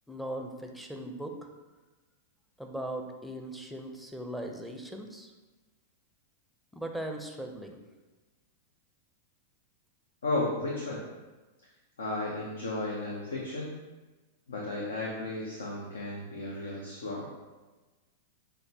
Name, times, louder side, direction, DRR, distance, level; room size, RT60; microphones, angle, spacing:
voice 1, 0.1-1.5 2.6-5.3 6.7-7.8, right 1 dB, ahead, 2 dB, 0.5 m, -39 dB
voice 2, 10.2-11.0 12.0-13.7 14.5-17.3, left 2 dB, 85° left, -3 dB, 0.7 m, -34 dB
6.4 x 2.1 x 2.7 m, 1.2 s
hypercardioid pair, 110°, 0 cm